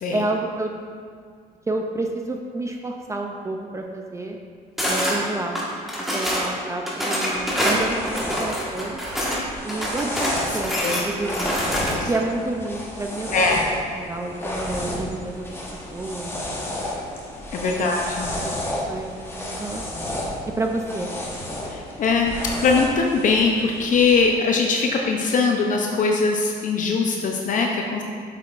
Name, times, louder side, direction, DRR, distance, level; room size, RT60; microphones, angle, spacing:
voice 1, 0.1-0.7 1.7-4.4 4.9-5.6 6.0-9.0 9.6-10.7 11.0-11.6 12.1-15.4 15.9-16.3 16.6-16.8 17.7-17.9 18.3-18.4 18.9-20.1 20.6-21.1, right 2 dB, 15° right, 2 dB, 0.5 m, -29 dB
sound 1, 4.8-5.2 5.5-6.5 6.9-9.4 9.7-12.2, equal, ahead, 1.5 m, -25 dB
sound 2, 7.3-24.3, left 1 dB, 15° left, 1.1 m, -32 dB
voice 2, 10.7-11.0 11.9-12.1 13.3-13.6 17.5-18.3 21.7-22.3 22.6-28.0, left 4 dB, 50° left, 1 dB, 0.6 m, -21 dB
8.2 x 6.4 x 2.5 m, 2.1 s
cardioid pair, 110°, 17 cm